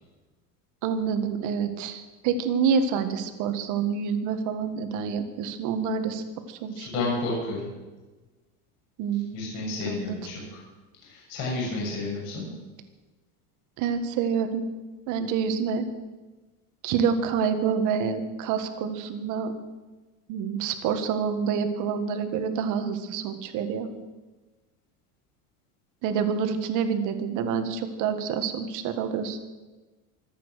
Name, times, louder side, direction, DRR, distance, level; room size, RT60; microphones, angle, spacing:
voice 1, 0.8-6.2 6.5-7.1 9.0-9.3 9.8-10.2 13.8-14.7 15.1-15.9 16.8-19.5 20.3-23.9 26.0-29.4, right 6 dB, 45° right, 8 dB, 1.7 m, -27 dB
voice 2, 6.7-7.6 9.3-10.6 11.1-12.5, left 3 dB, 45° left, -3 dB, 6.9 m, -31 dB
24.5 x 9.0 x 6.6 m, 1.2 s
cardioid pair, 170°, 43 cm